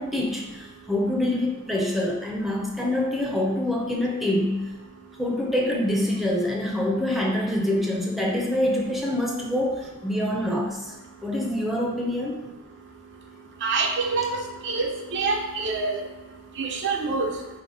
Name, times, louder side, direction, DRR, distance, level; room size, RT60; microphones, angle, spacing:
voice 1, 0.0-4.5 5.2-10.9 11.2-12.4, left 1 dB, ahead, -2 dB, 0.5 m, -25 dB
voice 2, 13.6-16.0 16.6-17.4, right 4 dB, 55° right, 2 dB, 0.5 m, -26 dB
4.9 x 2.1 x 3.9 m, 1.1 s
head